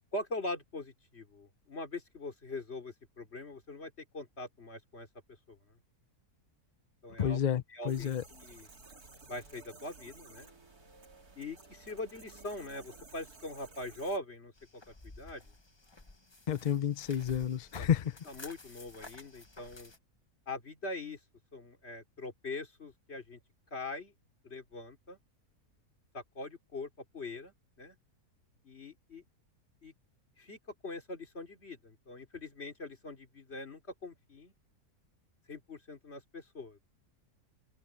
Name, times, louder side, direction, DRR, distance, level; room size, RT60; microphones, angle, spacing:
voice 1, 0.1-5.1 5.5-5.8 7.0-7.4 7.7-8.7 9.3-10.5 11.4-14.8 15.2-15.4 17.8-17.9 18.3-19.9 20.5-21.2 21.5-23.4 23.7-24.1 24.4-25.2 26.1-28.0 28.6-29.2 29.8-29.9 30.4-30.6 30.8-34.5 35.5-36.8, left 2 dB, 40° left, 3.3 m, -42 dB
voice 2, 7.2-8.2 16.5-18.2, left 9 dB, 60° left, 0.4 m, -30 dB
sound 1, 7.9-14.2, right 3 dB, 70° right, 3.7 m, -55 dB
sound 2, 14.5-20.0, left 2 dB, 20° left, 1.2 m, -52 dB
omnidirectional pair, 1.6 m